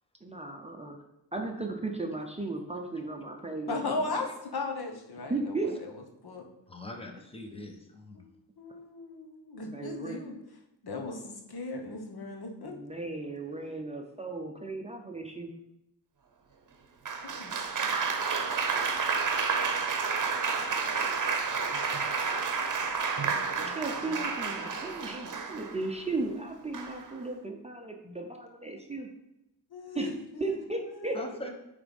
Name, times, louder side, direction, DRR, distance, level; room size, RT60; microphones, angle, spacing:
voice 1, 0.2-1.0 1.3-4.3 5.3-5.8 9.7-10.2 12.6-15.5 23.7-29.1 30.0-30.1 30.4-31.2, right 2 dB, 15° right, 2 dB, 0.7 m, -35 dB
voice 2, 3.7-6.5 8.1-8.3 8.6-10.4 10.8-12.8 17.2-17.5 23.3-24.3 27.5-27.6 29.7-31.4, left 3 dB, 60° left, 2 dB, 1.3 m, -38 dB
voice 3, 6.7-8.2 31.1-31.5, left 1 dB, 15° left, 3 dB, 1.1 m, -42 dB
Applause, 17.0-25.9 26.7-27.1, right 5 dB, 45° right, 0.9 m, -30 dB
8.9 x 3.6 x 5.3 m, 0.88 s
wide cardioid pair, 115°, 43 cm